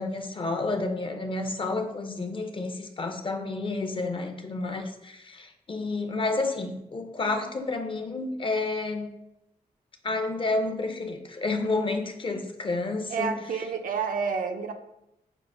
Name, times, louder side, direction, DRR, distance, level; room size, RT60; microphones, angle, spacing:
voice 1, 0.0-9.1 10.0-13.4, left 3 dB, 35° left, 5 dB, 0.5 m, -30 dB
voice 2, 13.1-14.7, right 6 dB, 70° right, 5 dB, 0.5 m, -29 dB
6.0 x 2.1 x 3.4 m, 0.84 s
cardioid pair, 80°, 15 cm